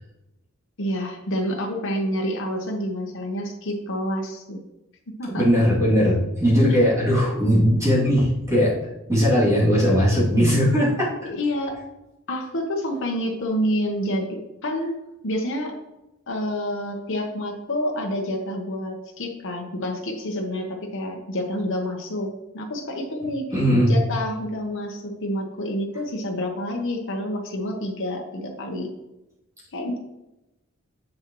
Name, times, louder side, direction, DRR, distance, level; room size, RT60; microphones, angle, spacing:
voice 1, 0.8-4.6 5.2-5.5 11.2-11.8 12.3-15.0 15.2-15.7 16.3-23.5 23.9-28.9 29.7-30.0, equal, 65° left, 1 dB, 1.0 m, -28 dB
voice 2, 5.4-8.7 9.1-11.1 23.5-23.9, equal, 15° right, -8 dB, 2.6 m, -19 dB
7.3 x 6.4 x 3.0 m, 0.96 s
head